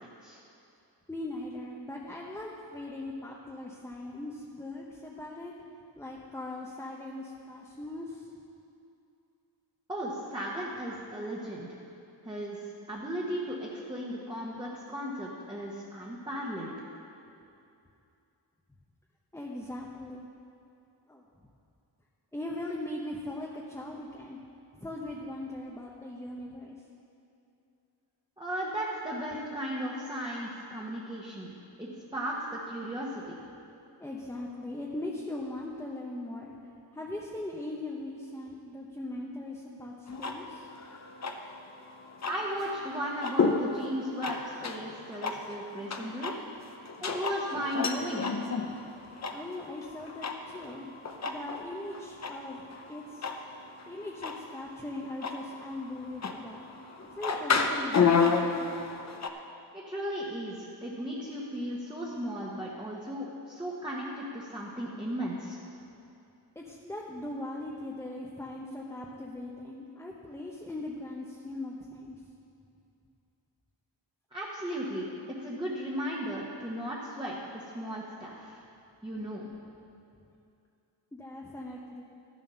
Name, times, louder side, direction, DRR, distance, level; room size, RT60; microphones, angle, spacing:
voice 1, 1.1-5.5 5.9-8.3 19.3-20.3 21.1-21.2 22.3-24.4 24.7-26.8 34.0-36.6 36.9-40.7 49.3-50.9 51.2-52.6 52.9-53.3 53.9-56.7 57.1-58.7 66.5-72.3 81.1-82.0, left 1 dB, 5° left, -2 dB, 0.8 m, -40 dB
voice 2, 9.9-11.8 12.2-12.6 12.9-16.7 28.4-31.5 31.8-33.4 42.3-46.3 47.0-48.3 59.7-65.6 74.3-78.6 79.0-79.5, equal, 10° right, -5 dB, 1.2 m, -36 dB
sound 1, 40.1-59.3, left 5 dB, 40° left, 0.7 m, -32 dB
13.0 x 7.4 x 5.7 m, 2.7 s
wide cardioid pair, 125°, 43 cm